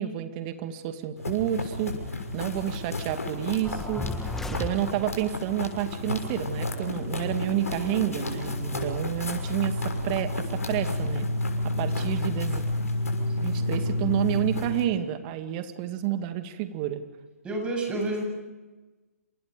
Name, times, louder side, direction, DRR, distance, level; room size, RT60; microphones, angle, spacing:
voice 1, 0.0-2.0 2.3-11.3 11.8-12.6 13.4-17.0, right 12 dB, 30° right, 9 dB, 2.2 m, -30 dB
sound 1, 1.2-14.8, left 2 dB, 75° left, 6.3 m, -31 dB
sound 2, 3.6-5.3, left 2 dB, 5° left, 1.5 m, -34 dB
voice 2, 17.4-18.2, right 2 dB, 15° right, 2 dB, 7.6 m, -30 dB
29.0 x 27.0 x 5.2 m, 1.2 s
figure-of-eight pair, 130°, 8 cm